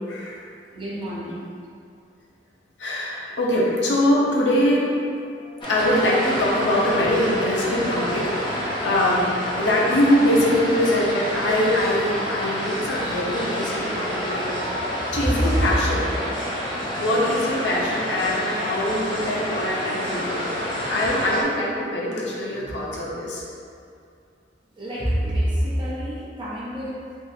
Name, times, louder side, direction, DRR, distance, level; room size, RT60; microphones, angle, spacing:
voice 1, 0.1-0.4 2.8-4.9 5.4-9.3 9.6-14.4 15.1-16.1 17.0-23.4, left 1 dB, 70° left, -4 dB, 0.6 m, -23 dB
voice 2, 0.7-1.4 14.6-15.6 24.7-27.0, equal, 30° right, -8 dB, 0.8 m, -27 dB
sound 1, 5.6-21.4, equal, 30° left, 0.8 m, -28 dB
3.6 x 2.9 x 2.7 m, 2.4 s
head